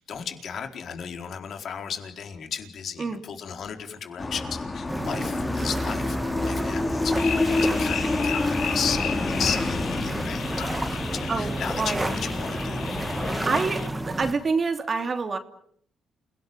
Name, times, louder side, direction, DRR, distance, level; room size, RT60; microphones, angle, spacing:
voice 1, 0.0-12.9, left 7 dB, 60° left, 5 dB, 4.4 m, -35 dB
sound 1, 4.2-13.6, left 2 dB, 25° left, 4.5 m, -29 dB
sound 2, 4.9-14.3, right 1 dB, 15° right, 2.8 m, -31 dB
sound 3, 7.1-13.9, left 7 dB, 85° left, 5.3 m, -35 dB
voice 2, 11.3-12.1 13.5-15.4, right 4 dB, 40° right, 7 dB, 2.9 m, -27 dB
29.0 x 18.5 x 9.5 m, 0.68 s
cardioid pair, 90°, 0 cm